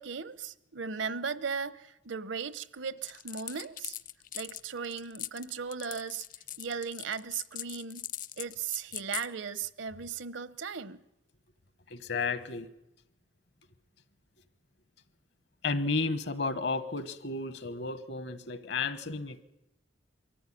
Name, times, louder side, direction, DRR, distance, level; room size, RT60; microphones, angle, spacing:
voice 1, 0.0-4.0 4.3-6.2 6.6-8.1 8.4-11.0, right 6 dB, 75° right, 0.8 m, -37 dB
sound 1, 3.1-9.3, left 12 dB, 45° left, 0.8 m, -40 dB
voice 2, 11.9-12.7 15.6-19.4, left 3 dB, 60° left, 1.2 m, -32 dB
23.5 x 14.0 x 10.0 m
head